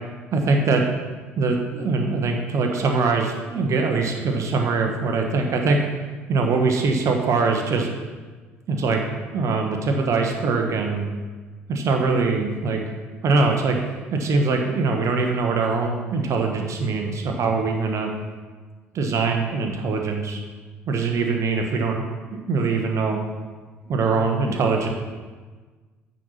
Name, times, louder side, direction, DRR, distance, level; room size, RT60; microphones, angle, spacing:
voice 1, 0.3-0.8 1.4-5.8 6.3-7.9 8.7-9.0 9.3-11.1 11.7-12.8 13.2-13.8 14.1-18.1 18.9-20.4 20.9-22.0 22.3-23.2 23.9-24.9, right 4 dB, 45° right, 3 dB, 1.2 m, -22 dB
9.0 x 4.2 x 5.7 m, 1.4 s
figure-of-eight pair, 50°, 7 cm